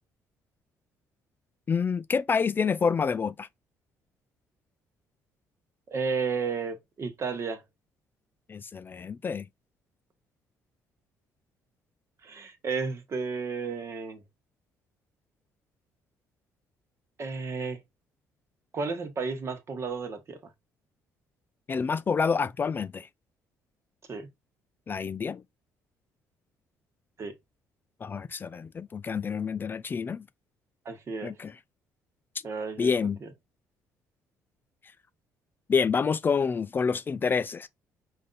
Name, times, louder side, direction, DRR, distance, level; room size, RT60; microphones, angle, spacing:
voice 1, 1.7-3.5 8.5-9.5 21.7-23.1 24.9-25.4 28.0-30.2 31.2-31.5 32.8-33.2 35.7-37.7, left 5 dB, 30° left, 0.3 m, -28 dB
voice 2, 5.9-7.6 12.2-14.2 17.2-17.8 18.7-20.4 24.1-24.3 27.2-27.3 30.8-31.4 32.4-32.9 33.2-33.3, right 5 dB, 45° right, 1.2 m, -32 dB
5.0 x 2.6 x 3.9 m
cardioid pair, 90°, 7 cm